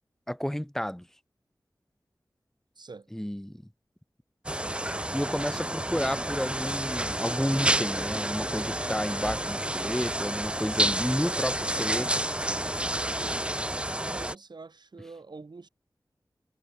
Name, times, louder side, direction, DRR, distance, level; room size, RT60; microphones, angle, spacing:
voice 1, 0.3-1.1 3.1-3.6 5.1-12.1, equal, 5° left, 1.9 m, -31 dB
voice 2, 2.7-3.1 14.1-15.7, right 4 dB, 75° right, 6.7 m, -45 dB
sound 1, 4.5-14.4, right 1 dB, 15° right, 1.6 m, -30 dB
wide cardioid pair, 70°, 7 cm